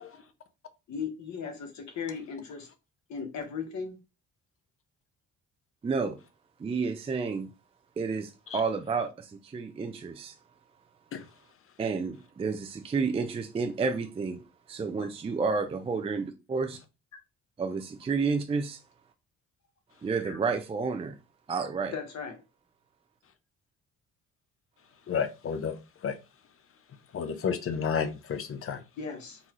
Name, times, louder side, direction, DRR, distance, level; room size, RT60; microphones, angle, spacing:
voice 1, 0.9-2.7 3.1-4.0 20.2-20.4 21.9-22.4 29.0-29.4, left 6 dB, 65° left, 1.2 m, -37 dB
voice 2, 5.8-6.2 6.6-7.5 8.0-10.4 11.8-14.4 14.7-16.8 17.6-18.8 20.0-21.2 21.5-21.9, right 4 dB, 20° right, 0.3 m, -30 dB
voice 3, 25.1-25.7 26.0-26.1 27.1-28.8, left 6 dB, 45° left, 0.7 m, -30 dB
4.0 x 2.3 x 2.9 m
cardioid pair, 90°, 30 cm